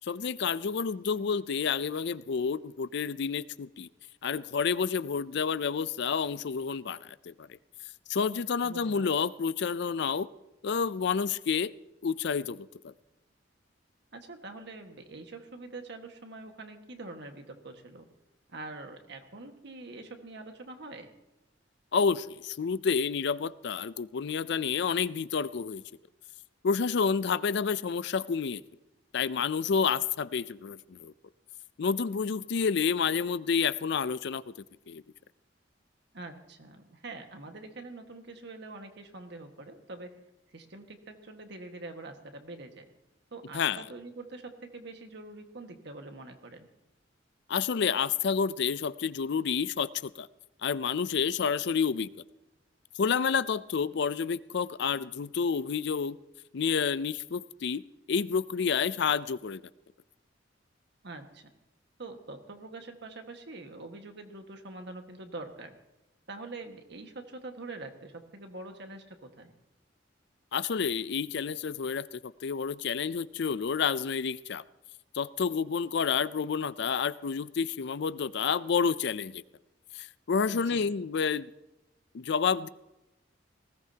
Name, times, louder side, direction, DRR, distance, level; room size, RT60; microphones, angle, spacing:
voice 1, 0.0-3.9 4.2-7.5 8.1-10.3 10.6-11.7 12.0-12.9 21.9-25.8 26.6-28.6 29.1-31.1 31.8-34.4 34.9-35.0 43.5-43.8 47.5-50.3 50.6-52.1 53.0-56.2 56.5-57.8 58.1-59.6 70.5-74.6 75.1-79.4 79.9-81.5 82.1-82.7, left 6 dB, 65° left, 17 dB, 0.5 m, -29 dB
voice 2, 8.6-9.1 14.1-18.1 18.5-21.1 36.1-40.2 40.5-42.8 43.3-46.7 61.0-61.5 62.0-65.7 66.3-69.5 80.5-80.9, right 2 dB, 65° right, 5 dB, 1.7 m, -44 dB
19.5 x 17.0 x 2.9 m, 0.97 s
head